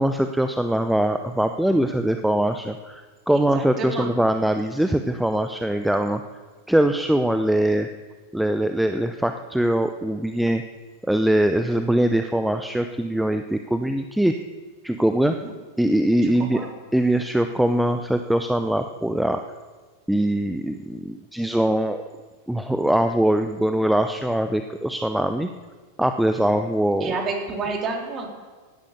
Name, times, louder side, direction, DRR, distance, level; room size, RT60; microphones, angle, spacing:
voice 1, 0.0-6.2 6.7-7.9 8.3-10.6 11.0-14.3 14.8-15.3 15.8-16.6 16.9-19.4 20.1-22.0 22.5-25.5 26.0-27.1, right 1 dB, ahead, 8 dB, 0.7 m, -22 dB
voice 2, 3.3-4.1 15.2-15.5 16.2-16.7 27.0-28.3, right 4 dB, 25° right, 1 dB, 3.7 m, -30 dB
17.0 x 11.5 x 7.0 m, 1.4 s
figure-of-eight pair, 90°, 0 cm